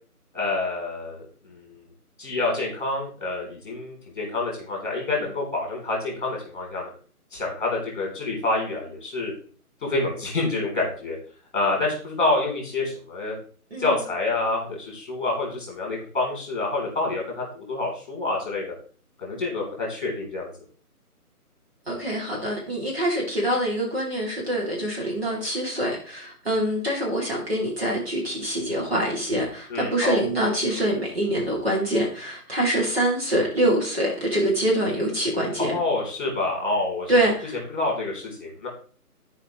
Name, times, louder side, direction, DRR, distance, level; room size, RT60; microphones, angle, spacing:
voice 1, 0.3-1.8 2.2-6.9 7.3-9.3 9.8-11.2 11.5-13.3 13.8-18.7 19.2-20.5 29.7-30.2 35.6-37.1 37.7-38.7, left 2 dB, 30° left, -2 dB, 3.4 m, -27 dB
voice 2, 21.9-35.8 37.1-37.6, right 1 dB, 40° right, -3 dB, 2.5 m, -25 dB
13.0 x 4.9 x 3.0 m, 0.42 s
hypercardioid pair, 180°, 46 cm